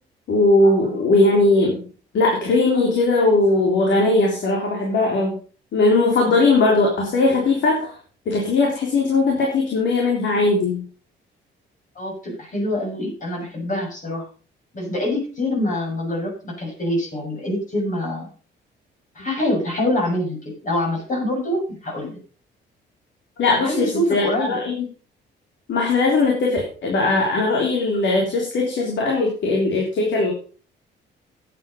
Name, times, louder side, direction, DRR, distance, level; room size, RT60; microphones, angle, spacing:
voice 1, 0.3-1.8 2.1-5.4 5.7-7.9 8.3-10.8 23.4-24.7 25.7-30.3, left 2 dB, 70° left, 0 dB, 3.6 m, -19 dB
voice 2, 11.9-14.3 14.7-18.3 19.1-20.4 20.6-22.2 23.6-24.6, left 1 dB, 40° left, -1 dB, 6.7 m, -25 dB
11.5 x 9.3 x 5.4 m, 0.40 s
cardioid pair, 90°, 20 cm